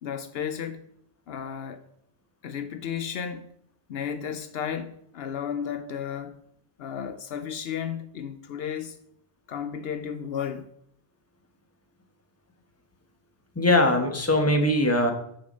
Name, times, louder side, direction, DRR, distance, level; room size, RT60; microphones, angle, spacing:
voice 1, 0.0-0.8 1.3-1.8 2.4-3.5 3.9-6.4 6.8-9.0 9.5-10.7, left 8 dB, 75° left, 0.8 m, -33 dB
voice 2, 13.5-15.1, left 1 dB, 15° left, 1.1 m, -21 dB
6.9 x 6.7 x 5.3 m
omnidirectional pair, 1.1 m